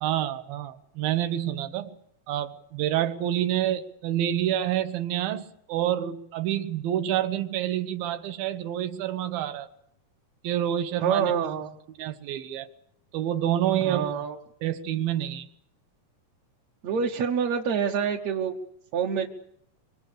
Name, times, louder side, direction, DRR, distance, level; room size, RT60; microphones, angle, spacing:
voice 1, 0.0-1.9 2.3-9.7 10.4-11.3 12.0-12.7 13.1-14.1 14.6-15.5, right 11 dB, 85° right, 10 dB, 2.9 m, -28 dB
voice 2, 11.0-11.8 13.8-14.4 16.8-18.5 18.9-19.3, right 7 dB, 65° right, 0 dB, 2.0 m, -26 dB
25.5 x 24.0 x 6.7 m, 0.75 s
omnidirectional pair, 4.0 m